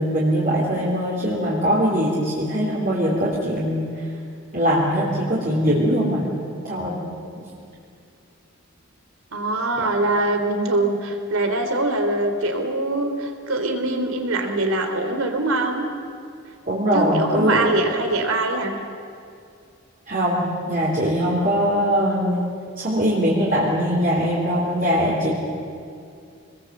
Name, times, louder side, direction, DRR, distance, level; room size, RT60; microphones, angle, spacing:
voice 1, 0.0-3.9 4.5-6.3 6.6-7.0 16.7-17.6 20.1-22.4 22.8-25.3, equal, 40° right, -5 dB, 3.8 m, -21 dB
voice 2, 9.3-15.8 16.9-18.8, right 2 dB, 75° right, 5 dB, 3.3 m, -23 dB
26.5 x 21.0 x 7.8 m, 2.5 s
head